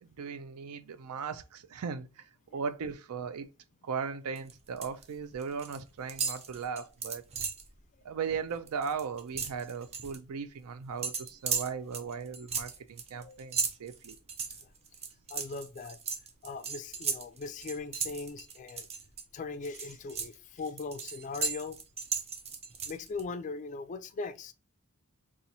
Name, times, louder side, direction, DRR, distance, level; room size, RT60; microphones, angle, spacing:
voice 1, 0.0-2.2 2.5-3.5 3.8-7.2 8.0-14.2, right 6 dB, 90° right, 0.4 m, -37 dB
sound 1, 4.4-5.0 5.3-5.8 6.1-7.7 8.1-8.3 8.6-10.2 11.0-19.2 19.6-23.2, right 5 dB, 30° right, 0.5 m, -36 dB
voice 2, 13.1-13.5 14.6-14.7 15.3-16.0 16.4-18.9 19.3-21.8 22.8-24.5, left 4 dB, 35° left, 0.3 m, -40 dB
4.0 x 2.4 x 2.7 m
head